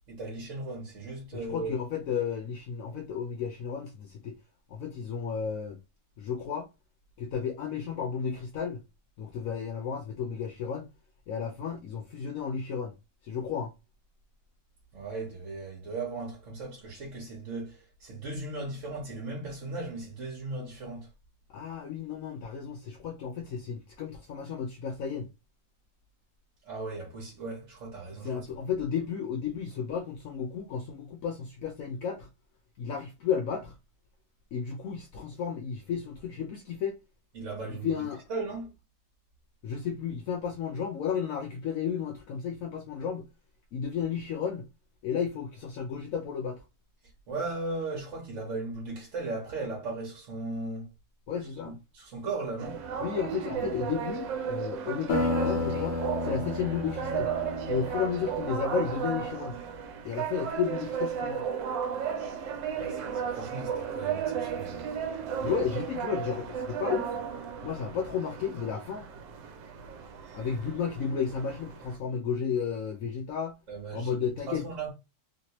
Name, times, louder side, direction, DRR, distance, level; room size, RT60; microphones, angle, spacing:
voice 1, 0.1-1.7 14.9-21.1 26.6-28.5 37.3-37.9 38.3-38.7 47.3-50.9 51.6-52.8 62.7-65.0 73.7-74.9, right 3 dB, 45° right, 1.4 m, -37 dB
voice 2, 1.3-4.4 4.7-5.8 6.2-6.7 7.2-8.8 9.2-10.9 11.3-12.9 13.2-13.7 21.5-25.3 28.2-32.3 32.8-33.7 34.5-36.9 37.8-38.2 39.6-43.3 43.7-44.7 45.0-46.6 51.3-51.7 53.0-57.3 57.7-59.6 60.0-61.5 65.4-67.1 67.6-69.1 70.3-73.6 73.9-74.6, left 7 dB, 75° left, 0.7 m, -33 dB
sound 1, 52.6-72.0, right 7 dB, 80° right, 1.3 m, -34 dB
sound 2, 55.1-59.4, left 3 dB, 60° left, 1.3 m, -33 dB
3.2 x 2.9 x 2.9 m
omnidirectional pair, 2.0 m